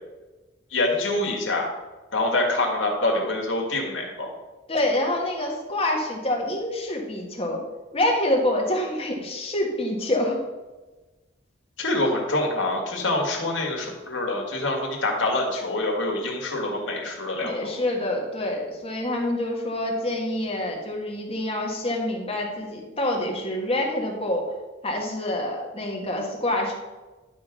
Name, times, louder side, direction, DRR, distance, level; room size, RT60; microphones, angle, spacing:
voice 1, 0.7-1.7 2.1-4.3 11.8-17.7, left 2 dB, 75° left, 0 dB, 2.1 m, -25 dB
voice 2, 4.7-7.6 7.9-10.4 17.4-24.4 24.8-26.7, left 1 dB, 30° left, 0 dB, 1.7 m, -26 dB
11.0 x 3.8 x 6.2 m, 1.2 s
head